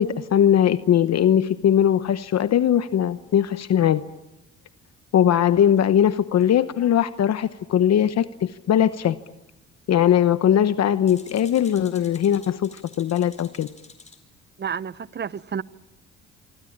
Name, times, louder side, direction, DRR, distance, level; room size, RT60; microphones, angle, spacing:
voice 1, 0.0-4.0 5.1-9.2 9.9-13.7, left 10 dB, 60° left, 1.0 m, -20 dB
sound 1, 5.8-5.9 6.4-6.5 9.1-9.2 11.1-14.2, left 3 dB, 20° left, 4.5 m, -48 dB
voice 2, 14.6-15.6, right 7 dB, 35° right, 0.9 m, -30 dB
25.5 x 25.0 x 8.7 m
cardioid pair, 90°, 30 cm